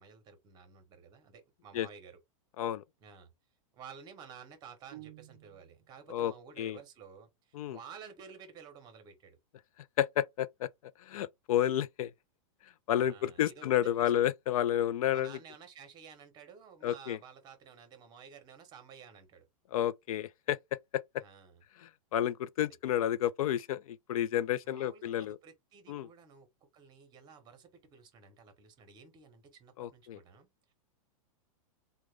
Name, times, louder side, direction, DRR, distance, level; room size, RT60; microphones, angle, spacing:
voice 1, 0.0-2.2 3.0-3.3 3.7-9.4 13.0-14.3 15.1-19.4 21.2-21.6 22.6-22.7 24.6-30.7, right 6 dB, 25° right, 0.8 m, -53 dB
sound 1, 4.9-5.9, right 17 dB, 45° right, 0.4 m, -52 dB
voice 2, 10.0-10.7 11.1-12.1 12.9-15.4 16.8-17.2 19.7-20.6 20.9-21.0 21.8-25.4 25.9-26.1 29.8-30.2, left 11 dB, 85° left, 0.4 m, -31 dB
3.6 x 2.2 x 3.2 m
supercardioid pair, 160°, 18 cm